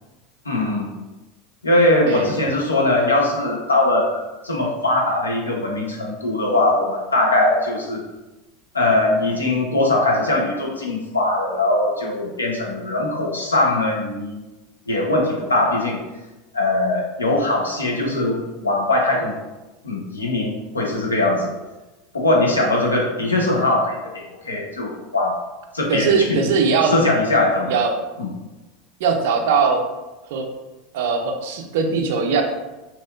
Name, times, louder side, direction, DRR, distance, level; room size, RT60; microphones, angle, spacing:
voice 1, 0.5-0.9 1.6-8.0 8.7-14.4 14.9-16.0 16.5-19.3 19.8-21.5 22.1-25.3 25.7-26.4 26.8-27.7 28.2-28.3, left 2 dB, 90° left, -2 dB, 0.5 m, -21 dB
voice 2, 25.9-26.9 27.7-27.9 29.0-29.8 30.3-30.5 30.9-32.4, right 5 dB, 65° right, 4 dB, 0.4 m, -20 dB
2.7 x 2.3 x 2.2 m, 1.1 s
figure-of-eight pair, 80°, 0 cm